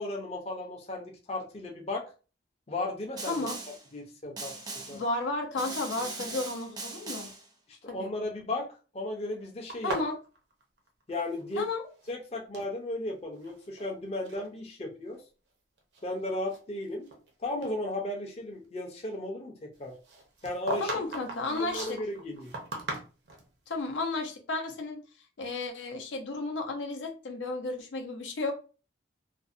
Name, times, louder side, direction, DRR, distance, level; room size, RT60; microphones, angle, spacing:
voice 1, 0.0-2.1 2.7-3.5 3.9-5.0 7.8-10.0 11.1-11.7 12.1-15.2 16.0-17.1 17.4-20.0 20.4-20.9 21.6-22.5, left 2 dB, 35° left, 1 dB, 0.5 m, -35 dB
Snare drum, 3.2-3.9 4.4-5.1 5.6-7.5, right 3 dB, 20° right, 0.4 m, -40 dB
voice 2, 3.3-3.6 4.9-7.3 7.9-8.1 9.8-10.1 11.6-11.8 20.8-22.0 23.7-25.0 25.4-28.5, left 3 dB, 85° left, 4 dB, 0.5 m, -33 dB
sound 1, 9.7-11.7 11.9-12.7 13.4-13.9 14.2-14.5 15.1-15.2 15.8-17.3 17.6-17.8 20.0-23.5, right 2 dB, 65° right, 0.6 m, -39 dB
2.5 x 2.0 x 2.5 m, 0.35 s
head